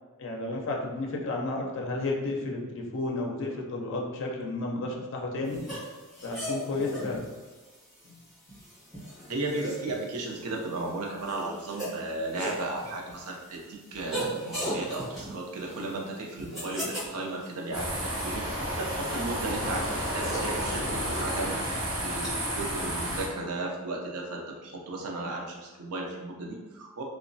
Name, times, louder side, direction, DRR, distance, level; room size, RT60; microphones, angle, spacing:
voice 1, 0.2-5.6 6.2-7.3 8.0-8.2, left 2 dB, 55° left, 0 dB, 0.5 m, -32 dB
sound 1, 5.5-22.3, equal, ahead, 1.4 m, -40 dB
voice 2, 9.3-27.0, right 2 dB, 80° right, 0 dB, 0.5 m, -35 dB
sound 2, 17.7-23.3, equal, 60° right, 0.9 m, -31 dB
2.9 x 2.1 x 2.6 m, 1.3 s
head